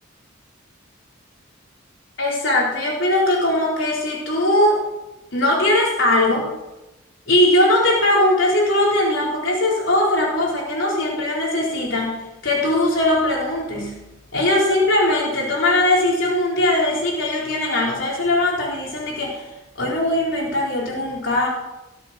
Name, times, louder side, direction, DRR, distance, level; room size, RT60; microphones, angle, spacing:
voice 1, 2.2-4.8 5.3-6.5 7.3-12.2 12.4-14.0 14.3-19.4 19.8-21.5, left 1 dB, 70° left, -3 dB, 4.3 m, -20 dB
20.0 x 7.9 x 6.1 m, 1.0 s
head